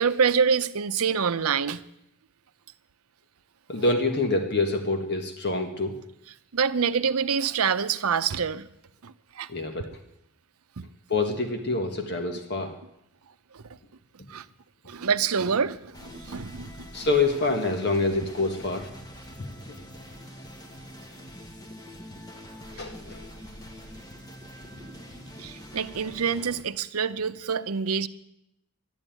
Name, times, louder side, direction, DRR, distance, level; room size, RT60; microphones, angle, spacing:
voice 1, 0.0-1.8 6.5-8.6 9.0-9.5 10.8-10.9 13.5-13.6 14.3-14.4 14.9-16.7 25.4-28.1, right 6 dB, 75° right, 0.7 m, -26 dB
voice 2, 3.7-6.0 9.5-9.9 11.1-12.8 16.9-18.9 19.4-19.5 22.8-23.3, left 3 dB, 50° left, 1.5 m, -26 dB
sound 1, 15.9-26.6, equal, 15° left, 1.6 m, -44 dB
12.5 x 11.0 x 9.2 m
head